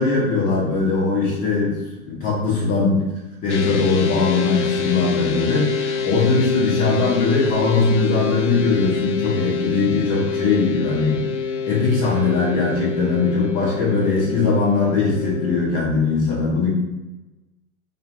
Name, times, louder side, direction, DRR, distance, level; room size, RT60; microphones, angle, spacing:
voice 1, 0.0-3.0 3.4-11.2 11.7-16.7, left 4 dB, 20° left, -5 dB, 1.0 m, -20 dB
sound 1, 3.5-15.6, left 6 dB, 55° left, 0.5 m, -26 dB
5.5 x 2.4 x 2.6 m, 1.1 s
figure-of-eight pair, 110°, 44 cm